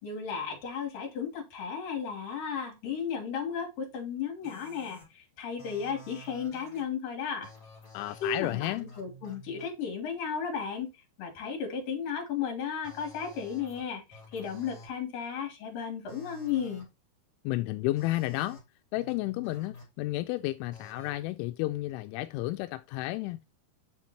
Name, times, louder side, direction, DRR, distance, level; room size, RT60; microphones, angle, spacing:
voice 1, 0.0-7.5 8.2-10.9 11.2-16.9, left 7 dB, 50° left, 3.7 m, -34 dB
sound 1, 4.4-5.0 5.6-6.8 7.4-9.7 12.8-13.8 14.1-14.9 16.1-16.8 18.0-18.6 19.0-19.8 20.7-21.1, left 2 dB, 30° left, 4.3 m, -50 dB
voice 2, 7.9-8.9 17.4-18.6 18.9-23.5, left 17 dB, 85° left, 2.9 m, -32 dB
8.5 x 5.8 x 2.9 m
omnidirectional pair, 5.3 m